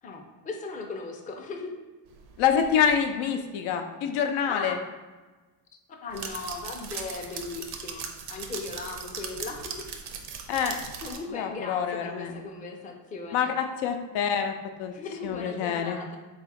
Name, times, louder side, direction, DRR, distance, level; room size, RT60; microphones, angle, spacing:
voice 1, 0.0-1.7 4.5-4.8 6.0-9.9 11.0-13.5 14.9-16.2, left 3 dB, 15° left, 1 dB, 0.4 m, -38 dB
sound 1, 2.1-3.0 6.1-11.2, right 6 dB, 55° right, 0.6 m, -39 dB
voice 2, 2.4-4.8 10.5-10.8 11.3-12.4 13.3-14.5 14.8-14.9 15.2-16.0, left 8 dB, 80° left, 5 dB, 0.6 m, -26 dB
3.8 x 2.4 x 4.1 m, 1.2 s
cardioid pair, 110°, 48 cm